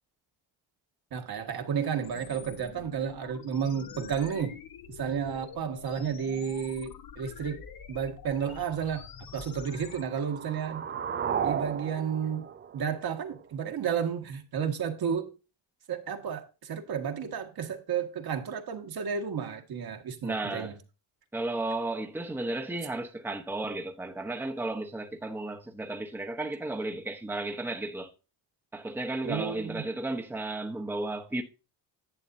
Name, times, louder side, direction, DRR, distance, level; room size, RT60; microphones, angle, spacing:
voice 1, 1.1-4.6 4.9-7.6 7.9-9.0 9.3-10.8 11.4-12.5 12.7-15.3 15.9-20.8 29.2-29.8, right 7 dB, 50° right, 1.8 m, -32 dB
sound 1, 2.0-10.0, left 7 dB, 50° left, 1.2 m, -46 dB
sound 2, 9.7-13.7, right 8 dB, 25° right, 0.4 m, -35 dB
voice 2, 20.2-20.7 21.3-28.1 28.7-31.4, right 2 dB, 5° right, 1.1 m, -34 dB
11.0 x 8.3 x 2.7 m
cardioid pair, 110°, 47 cm